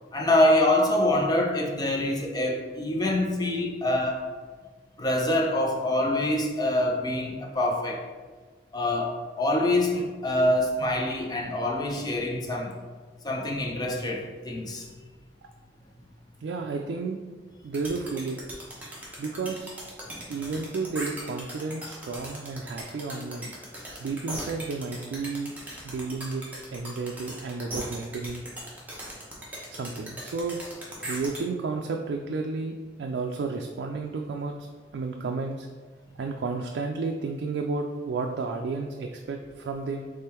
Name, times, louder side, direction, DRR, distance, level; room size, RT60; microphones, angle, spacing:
voice 1, 0.1-4.3 5.0-8.0 8.7-12.7 13.2-14.9, left 1 dB, 25° left, 0 dB, 0.6 m, -25 dB
voice 2, 16.4-17.2 17.6-18.4 19.2-19.7 20.3-23.5 24.0-25.5 25.8-26.4 26.7-28.4 29.7-30.6 31.0-34.7 34.9-35.7 36.2-40.1, right 4 dB, 75° right, 3 dB, 0.3 m, -32 dB
sound 1, 17.7-31.4, right 1 dB, 10° right, 0.9 m, -38 dB
3.7 x 3.3 x 4.2 m, 1.4 s
head